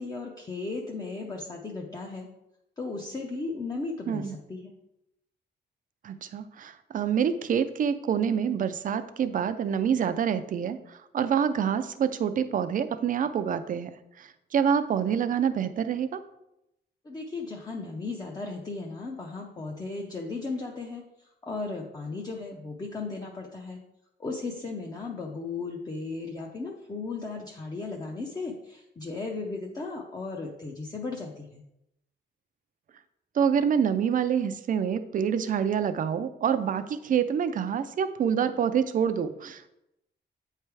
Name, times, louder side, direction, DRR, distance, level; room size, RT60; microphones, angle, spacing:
voice 1, 0.0-2.3 2.8-4.7 17.0-23.8 24.2-31.6, left 3 dB, 20° left, 0 dB, 0.6 m, -36 dB
voice 2, 4.1-4.4 6.0-13.9 14.2-16.2 33.4-39.8, right 7 dB, 45° right, 11 dB, 0.4 m, -27 dB
8.3 x 3.3 x 4.7 m, 0.85 s
wide cardioid pair, 170°, 19 cm